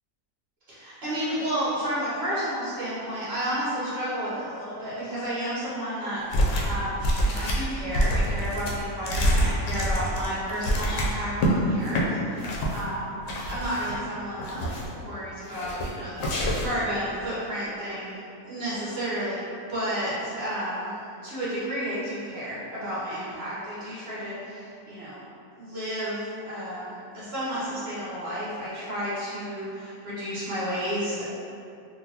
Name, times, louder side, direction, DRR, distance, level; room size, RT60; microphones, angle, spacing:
voice 1, 0.7-13.2 13.5-18.2 18.5-21.0 21.2-25.2 25.6-31.3, equal, 45° right, -10 dB, 1.2 m, -32 dB
sound 1, 6.3-6.8 7.0-11.5 11.9-12.0 12.4-12.8 13.3-14.0 14.4-15.0 15.5-15.9 16.2-16.8, equal, 65° left, 0.9 m, -26 dB
3.8 x 2.4 x 2.8 m, 2.6 s
omnidirectional pair, 1.6 m